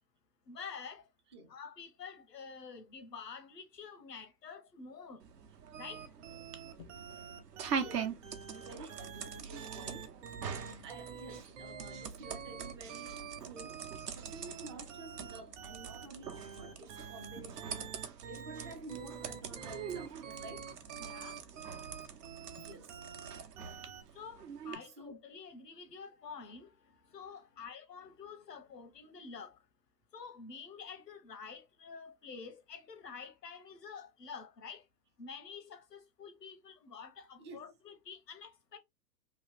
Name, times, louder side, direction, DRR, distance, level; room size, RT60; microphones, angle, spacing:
voice 1, 0.5-1.0 1.5-5.2 5.8-6.0 21.0-21.4 24.1-26.7 27.1-29.6 30.1-34.8 35.2-38.8, left 5 dB, 80° left, 0.9 m, -48 dB
sound 1, 5.2-24.7, right 6 dB, 75° right, 0.9 m, -44 dB
sound 2, 5.7-24.0, right 7 dB, 50° right, 0.9 m, -47 dB
voice 2, 8.5-10.2 10.6-13.8 14.1-20.8 22.4-23.0 25.0-25.2 37.4-37.7, right 2 dB, 20° right, 0.3 m, -50 dB
3.1 x 2.7 x 3.2 m
figure-of-eight pair, 110°, 48 cm